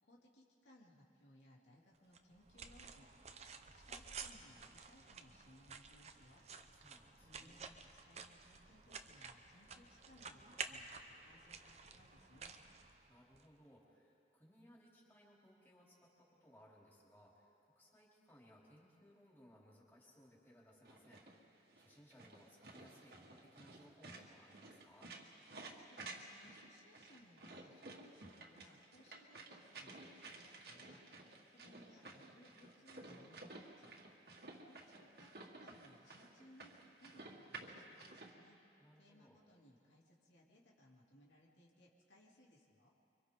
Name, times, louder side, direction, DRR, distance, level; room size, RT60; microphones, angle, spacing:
voice 1, 0.0-3.1 3.6-6.4 7.2-12.6 25.6-31.0 31.3-33.9 34.5-36.7 37.0-38.6 39.0-42.9, left 1 dB, 90° left, -4 dB, 3.2 m, -65 dB
sound 1, 2.1-13.4, right 5 dB, 35° right, 0.8 m, -52 dB
voice 2, 6.7-7.6 13.1-25.1 38.8-39.4, equal, 10° left, -5 dB, 3.7 m, -65 dB
sound 2, 20.9-38.3, right 2 dB, 60° right, 2.0 m, -54 dB
30.0 x 24.5 x 3.9 m, 2.8 s
head